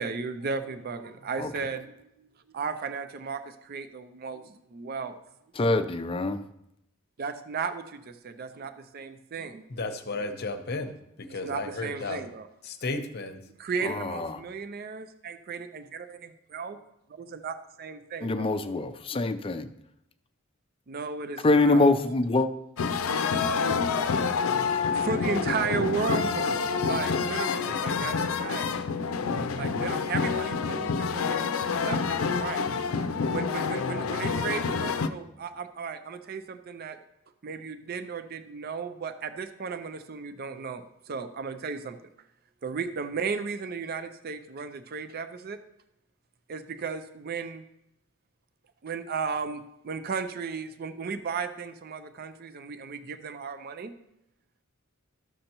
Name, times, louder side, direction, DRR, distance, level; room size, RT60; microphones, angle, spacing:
voice 1, 0.0-2.1 2.5-5.2 7.2-9.7 11.4-12.5 13.6-16.8 17.1-18.5 20.9-21.8 24.4-26.5 26.9-28.7 29.5-32.7 33.3-37.0 37.4-42.0 42.6-45.6 46.5-47.6 48.8-53.9, right 5 dB, 45° right, 10 dB, 0.4 m, -35 dB
voice 2, 5.6-6.4 13.8-14.4 18.2-19.7 21.4-22.5, left 2 dB, 25° left, 9 dB, 0.4 m, -24 dB
voice 3, 9.7-12.2 12.6-13.4, left 3 dB, 50° left, 6 dB, 0.8 m, -34 dB
sound 1, 22.8-35.1, left 5 dB, 85° left, 0.5 m, -28 dB
13.0 x 6.5 x 2.9 m, 0.82 s
head